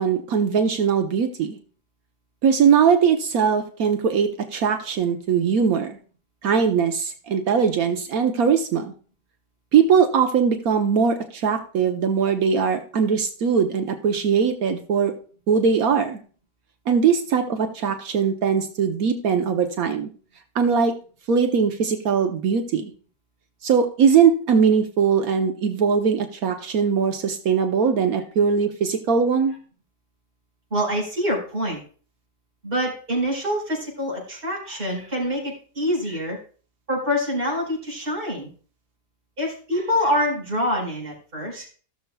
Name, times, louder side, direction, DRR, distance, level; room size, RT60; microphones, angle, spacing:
voice 1, 0.0-1.6 2.4-6.0 6.4-8.9 9.7-15.1 15.5-16.2 16.9-20.1 20.5-20.9 21.3-22.9 23.6-29.5, right 6 dB, 70° right, 7 dB, 1.3 m, -20 dB
voice 2, 30.7-31.8 32.6-36.4 36.9-38.5 39.4-41.7, equal, 35° right, -2 dB, 4.8 m, -25 dB
17.0 x 6.8 x 2.3 m, 0.41 s
omnidirectional pair, 1.6 m